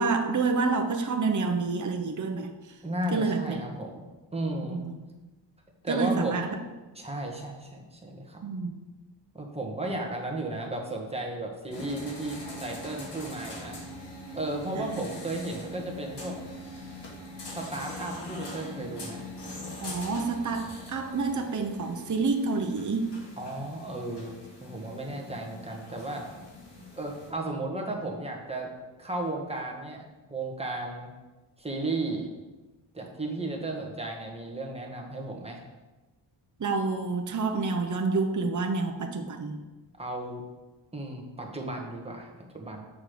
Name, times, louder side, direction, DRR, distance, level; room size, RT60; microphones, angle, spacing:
voice 1, 0.0-2.5 3.1-3.6 4.7-4.9 5.9-6.6 8.4-8.8 14.7-14.9 19.8-23.1 36.6-39.6, right 4 dB, 40° right, 4 dB, 0.8 m, -28 dB
voice 2, 2.8-4.0 4.3-4.8 5.8-6.3 6.9-8.4 9.3-13.8 14.3-16.3 17.5-19.2 23.4-26.3 27.0-28.7 29.0-30.0 30.3-31.1 31.6-32.3 32.9-35.6 40.0-40.4 40.9-42.3 42.5-42.8, right 2 dB, 15° right, 0 dB, 1.5 m, -34 dB
sound 1, 11.7-27.3, left 1 dB, 65° left, 2.2 m, -42 dB
7.1 x 6.4 x 5.1 m, 1.2 s
wide cardioid pair, 100°, 45 cm